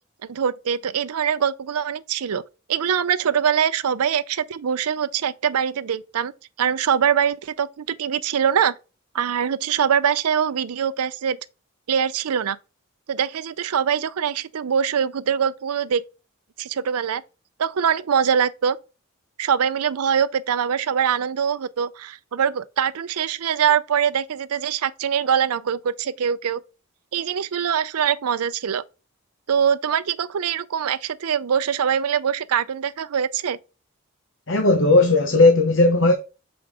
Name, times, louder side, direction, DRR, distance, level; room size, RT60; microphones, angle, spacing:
voice 1, 0.3-2.4 2.7-6.3 6.6-8.8 9.1-11.4 11.9-12.6 13.1-16.0 16.6-17.2 17.6-18.8 19.4-26.6 27.1-28.8 29.5-33.6, right 8 dB, 90° right, 0.5 m, -23 dB
voice 2, 34.5-36.1, left 2 dB, 55° left, 0.8 m, -16 dB
7.0 x 5.1 x 3.5 m
head